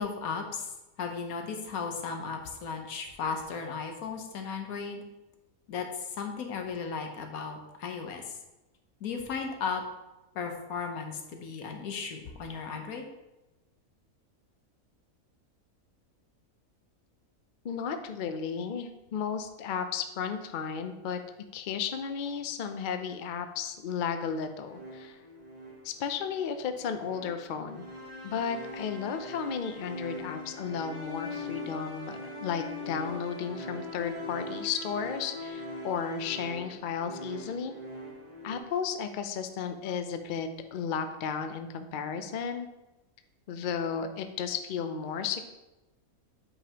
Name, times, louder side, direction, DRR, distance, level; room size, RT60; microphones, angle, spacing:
voice 1, 0.0-5.0 5.7-8.4 9.0-9.8 10.3-13.1, left 5 dB, 85° left, 4 dB, 1.4 m, -35 dB
voice 2, 17.6-21.2 21.5-25.2 25.8-27.8 28.2-37.7 38.4-42.7 43.5-45.4, left 7 dB, 60° left, 8 dB, 0.5 m, -34 dB
sound 1, 24.7-38.6, left 1 dB, 35° right, 0.9 m, -41 dB
8.7 x 5.0 x 2.9 m, 1.0 s
omnidirectional pair, 1.5 m